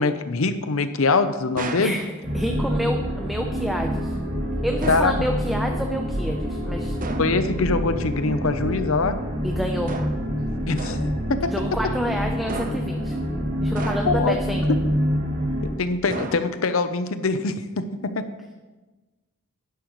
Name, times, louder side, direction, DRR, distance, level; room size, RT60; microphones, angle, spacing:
voice 1, 0.0-2.0 4.9-5.1 7.2-9.2 10.7-11.5 14.1-14.4 15.8-17.8 18.2-18.3, left 3 dB, 80° left, 10 dB, 0.8 m, -23 dB
sound 1, 1.6-2.0 4.8-5.2 7.0-7.4 9.9-10.3 10.8-11.2 12.5-13.0 13.8-14.3 16.1-16.8, right 2 dB, 40° right, 0.8 m, -33 dB
voice 2, 1.8-4.1 4.6-7.0 9.4-9.9 11.5-13.2 13.6-14.7, equal, ahead, 2 dB, 0.6 m, -29 dB
sound 2, 2.2-15.7, equal, 75° right, 3.8 m, -26 dB
11.5 x 10.5 x 3.1 m, 1.2 s
head